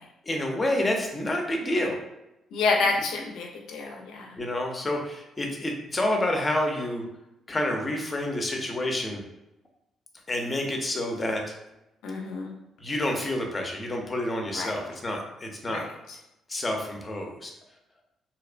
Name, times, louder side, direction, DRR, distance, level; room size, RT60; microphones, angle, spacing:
voice 1, 0.2-2.0 4.4-7.0 7.5-9.2 10.3-11.4 12.8-15.9 16.5-17.5, left 1 dB, 25° left, 2 dB, 0.5 m, -28 dB
voice 2, 2.5-4.3 12.0-12.6 14.5-14.7 15.7-15.9, left 3 dB, 85° left, 0 dB, 0.5 m, -28 dB
2.8 x 2.0 x 2.4 m, 0.89 s
cardioid pair, 90°, 0 cm